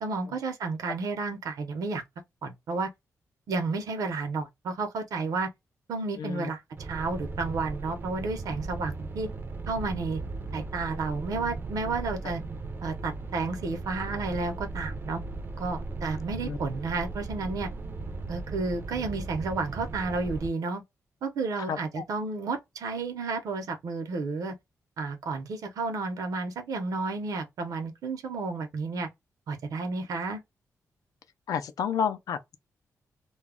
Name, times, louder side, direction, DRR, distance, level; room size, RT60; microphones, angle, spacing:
voice 1, 0.0-2.0 2.4-2.9 3.5-5.5 5.9-9.3 9.7-10.2 10.5-12.4 12.8-15.2 15.6-17.7 18.3-20.8 21.2-24.5 25.0-29.1 29.5-30.4, right 3 dB, 90° right, 0.7 m, -31 dB
voice 2, 6.2-6.5 12.2-12.3 16.4-16.6 21.7-22.0 31.5-32.6, left 7 dB, 90° left, 0.4 m, -31 dB
sound 1, 6.8-20.5, right 3 dB, 35° right, 0.4 m, -37 dB
2.2 x 2.0 x 3.4 m
wide cardioid pair, 150°, 6 cm